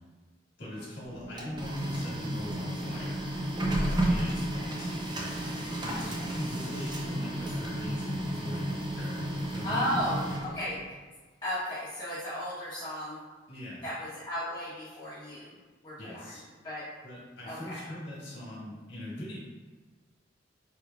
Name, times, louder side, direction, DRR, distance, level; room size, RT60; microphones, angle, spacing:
voice 1, 0.6-3.3 3.8-4.9 5.8-10.0 13.5-13.9 16.0-16.4 17.0-19.4, left 1 dB, 60° left, -6 dB, 1.4 m, -41 dB
Printer, 1.1-10.9, right 1 dB, 25° right, 0.6 m, -32 dB
voice 2, 5.9-6.4 9.6-10.8 11.4-13.2 13.8-15.5 15.8-16.2 16.6-16.8 17.4-17.9, equal, 25° left, -12 dB, 1.0 m, -35 dB
4.8 x 3.1 x 2.3 m, 1.3 s
head